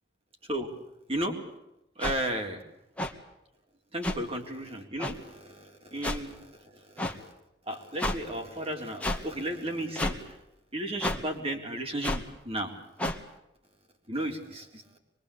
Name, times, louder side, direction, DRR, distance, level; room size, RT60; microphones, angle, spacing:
sound 1, 2.0-2.1 3.0-3.1 4.0-4.2 5.0-5.1 6.0-6.2 7.0-7.1 8.0-8.2 9.0-9.2 10.0-10.2 11.0-11.2 12.0-12.2 13.0-13.2, left 1 dB, 5° left, 2.0 m, -30 dB
voice 1, 2.0-2.6 3.9-6.4 6.9-7.3 7.7-10.4 10.7-12.7 14.1-14.8, right 1 dB, 35° right, 3 dB, 4.1 m, -34 dB
24.5 x 23.0 x 8.6 m, 0.85 s
head